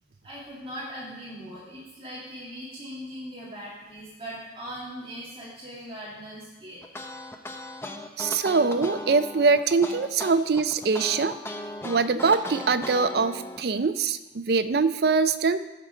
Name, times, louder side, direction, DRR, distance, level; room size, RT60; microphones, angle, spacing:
voice 1, 0.2-6.8, equal, 30° right, -6 dB, 2.3 m, -40 dB
sound 1, 6.8-13.6, left 1 dB, 15° left, 0.6 m, -37 dB
voice 2, 8.2-11.4 11.8-15.6, right 4 dB, 55° right, 12 dB, 0.4 m, -23 dB
14.0 x 5.7 x 4.9 m, 1.1 s
head